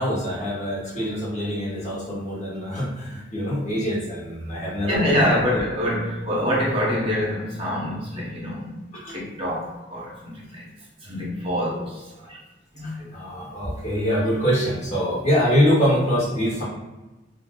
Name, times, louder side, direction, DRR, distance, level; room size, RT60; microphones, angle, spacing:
voice 1, 0.0-5.6 8.9-9.2 12.8-16.6, equal, 40° left, 1.1 m, -24 dB
voice 2, 4.9-8.7 9.1-10.6 11.0-12.4 12.7-13.1, left 1 dB, 30° right, 0.8 m, -25 dB
2.6 x 2.4 x 3.6 m
head